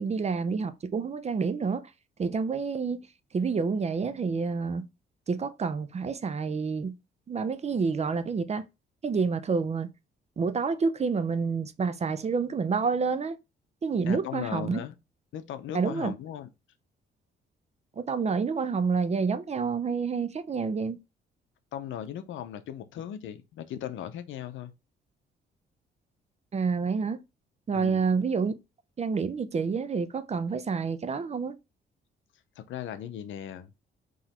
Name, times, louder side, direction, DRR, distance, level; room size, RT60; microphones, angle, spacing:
voice 1, 0.0-1.8 2.2-3.1 3.3-4.8 5.3-7.0 7.3-8.6 9.0-9.9 10.4-13.4 13.8-14.8 15.7-16.1 18.0-21.0 26.5-27.2 27.7-28.5 29.0-31.5, right 5 dB, 35° right, 0.5 m, -28 dB
voice 2, 14.1-14.9 15.3-16.5 21.7-24.7 27.7-28.1 32.6-33.7, left 10 dB, 75° left, 0.7 m, -37 dB
4.0 x 3.0 x 4.2 m
cardioid pair, 90°, 20 cm